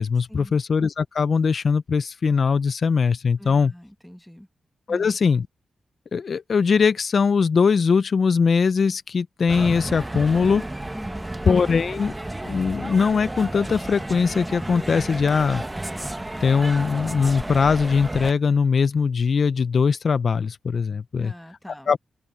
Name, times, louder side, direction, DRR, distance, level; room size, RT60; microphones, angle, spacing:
voice 1, 0.0-3.7 4.9-5.5 6.1-10.7 11.5-12.1 12.4-15.6 16.4-21.3 21.9-22.0, left 5 dB, 60° left, 0.6 m, -21 dB
voice 2, 3.4-4.5 4.9-5.2 10.9-11.4 21.2-21.9, equal, 5° left, 1.3 m, -42 dB
sound 1, 9.5-18.3, right 1 dB, 15° right, 1.5 m, -32 dB
cardioid pair, 55°, 0 cm